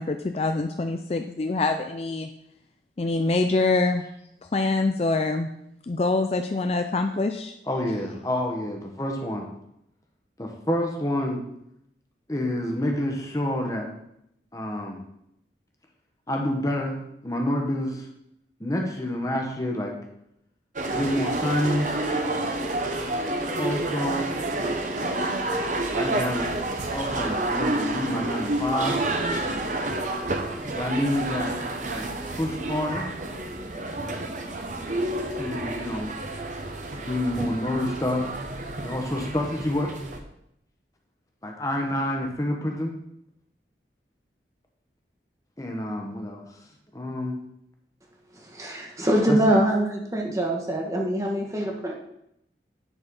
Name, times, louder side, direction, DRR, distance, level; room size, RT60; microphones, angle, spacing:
voice 1, 0.0-2.3 3.0-4.0 4.5-5.5 5.8-7.5, left 3 dB, 35° left, 6 dB, 0.4 m, -25 dB
voice 2, 7.7-9.5 10.4-11.4 12.3-13.9 14.5-15.0 16.3-18.1 18.6-20.0 20.9-22.1 23.6-24.3 25.9-26.5 26.9-29.0 30.7-31.5 31.8-33.0 35.3-36.1 37.1-38.3 38.8-39.9 41.4-43.0 45.6-46.4 46.9-47.4 49.3-49.6, left 1 dB, 20° left, 1 dB, 1.2 m, -28 dB
sound 1, 20.8-40.2, right 2 dB, 45° right, 0.9 m, -29 dB
voice 3, 48.3-52.0, right 1 dB, 20° right, 0 dB, 1.3 m, -24 dB
9.7 x 4.4 x 5.4 m, 0.78 s
head